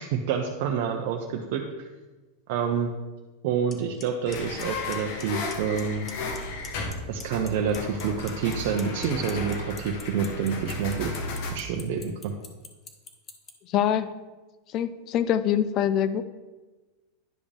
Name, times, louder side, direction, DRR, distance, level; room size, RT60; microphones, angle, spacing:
voice 1, 0.0-1.6 2.5-2.9 3.4-6.1 7.1-11.1 11.5-12.3, right 6 dB, 65° right, 1 dB, 0.7 m, -28 dB
Clock, 3.7-3.8 4.0-4.4 4.6-5.2 5.5-5.8 6.1-6.9 7.2-13.5, left 5 dB, 25° left, 0.9 m, -42 dB
sound 1, 4.3-11.5, left 2 dB, 65° left, 1.2 m, -34 dB
voice 2, 13.7-14.1 14.7-16.2, left 10 dB, 45° left, 14 dB, 0.4 m, -24 dB
10.5 x 5.0 x 3.4 m, 1.2 s
hypercardioid pair, 115°, 0 cm